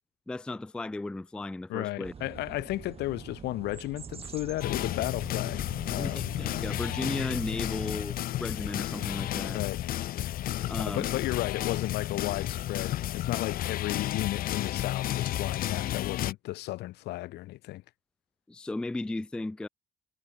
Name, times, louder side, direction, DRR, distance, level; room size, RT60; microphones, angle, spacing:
voice 1, 0.3-2.1 6.0-9.6 10.7-11.0 18.5-19.7, left 2 dB, 5° left, 0.3 m, -35 dB
voice 2, 1.7-6.2 9.5-9.8 10.8-17.8, left 17 dB, 80° left, 1.2 m, -34 dB
sound 1, 2.0-7.9, right 6 dB, 35° right, 4.5 m, -45 dB
sound 2, 4.6-16.3, left 13 dB, 60° left, 0.7 m, -32 dB
cardioid pair, 110°, 17 cm